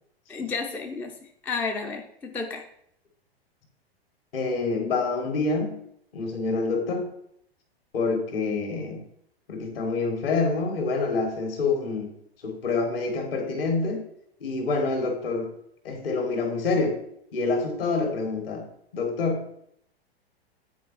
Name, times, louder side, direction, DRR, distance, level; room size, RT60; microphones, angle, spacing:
voice 1, 0.3-1.1 1.4-2.7, left 4 dB, 5° left, 4 dB, 0.4 m, -31 dB
voice 2, 4.3-5.8 6.1-7.1 7.9-9.0 9.5-12.1 12.4-14.0 14.4-15.5 15.8-17.0 17.3-18.7 18.9-19.4, left 3 dB, 65° left, 4 dB, 2.2 m, -27 dB
9.1 x 4.4 x 4.4 m, 0.70 s
figure-of-eight pair, 100°, 31 cm